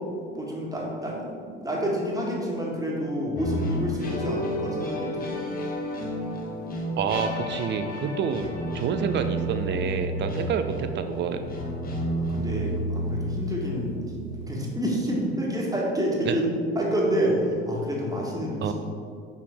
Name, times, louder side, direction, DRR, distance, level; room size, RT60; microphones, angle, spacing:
voice 1, 0.3-1.3 1.6-5.4 12.2-14.0 14.5-16.5 16.7-18.7, equal, 10° right, -3 dB, 1.6 m, -28 dB
sound 1, 3.4-14.5, equal, 25° left, 1.2 m, -31 dB
voice 2, 7.0-8.5 8.7-11.4 16.2-16.4 18.6-18.7, right 6 dB, 35° right, 8 dB, 0.6 m, -28 dB
6.2 x 5.6 x 3.5 m, 2.3 s
figure-of-eight pair, 65°, 33 cm